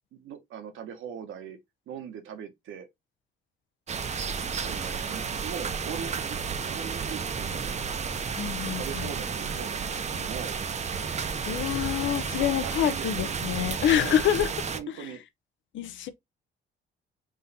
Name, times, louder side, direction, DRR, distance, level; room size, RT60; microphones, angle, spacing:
voice 1, 0.1-1.6 1.9-2.9 4.4-6.4 6.7-7.8 8.8-10.6 12.3-13.3 14.0-15.2, right 8 dB, 80° right, 1.2 m, -40 dB
sound 1, 3.9-14.8, right 6 dB, 35° right, 0.6 m, -32 dB
voice 2, 8.3-9.1 11.5-14.5 14.9-15.1 15.7-16.1, left 11 dB, 75° left, 0.6 m, -27 dB
3.9 x 2.6 x 4.0 m
cardioid pair, 90°, 20 cm